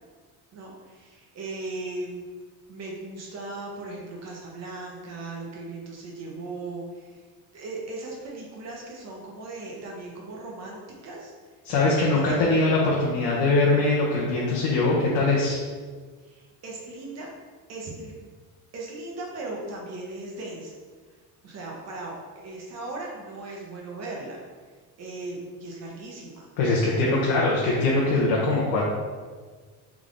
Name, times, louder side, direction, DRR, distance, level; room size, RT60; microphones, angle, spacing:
voice 1, 0.5-2.2 2.7-7.2 7.5-11.3 11.7-12.5 16.2-17.3 17.7-18.1 18.7-20.7 21.4-24.4 25.0-26.5 26.7-27.3, right 2 dB, 45° right, -2 dB, 0.9 m, -38 dB
voice 2, 11.6-15.6 26.6-28.8, left 2 dB, 80° left, -4 dB, 0.9 m, -22 dB
3.6 x 3.6 x 3.7 m, 1.5 s
cardioid pair, 150°, 37 cm